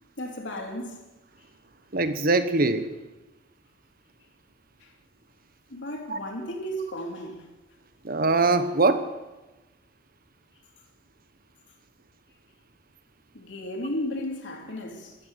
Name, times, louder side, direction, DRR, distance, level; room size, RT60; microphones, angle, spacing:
voice 1, 0.2-1.0 4.8-4.9 5.7-7.5 13.3-15.2, equal, 75° left, 3.2 m, -34 dB
voice 2, 1.9-2.9 6.1-6.2 8.0-9.0, right 3 dB, 50° right, 1.2 m, -22 dB
14.0 x 12.0 x 8.2 m
head